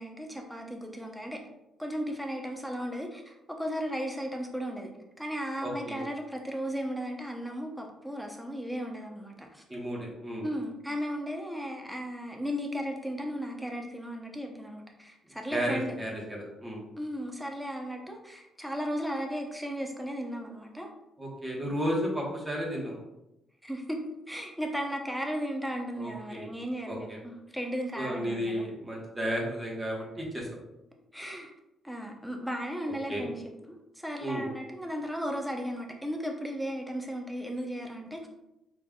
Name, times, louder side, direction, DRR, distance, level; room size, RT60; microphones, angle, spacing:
voice 1, 0.0-1.4 1.8-4.9 5.2-9.6 10.4-16.0 17.0-20.9 23.6-24.0 24.3-28.7 31.1-31.5 31.8-33.4 33.7-38.3, equal, ahead, 1 dB, 0.8 m, -35 dB
voice 2, 5.6-6.0 9.7-10.5 15.5-16.8 21.2-23.0 26.0-26.5 26.9-27.2 27.9-30.5 32.9-33.3 34.2-34.5, equal, 20° right, -3 dB, 1.3 m, -33 dB
4.5 x 3.6 x 2.4 m, 0.90 s
cardioid pair, 90°, 0 cm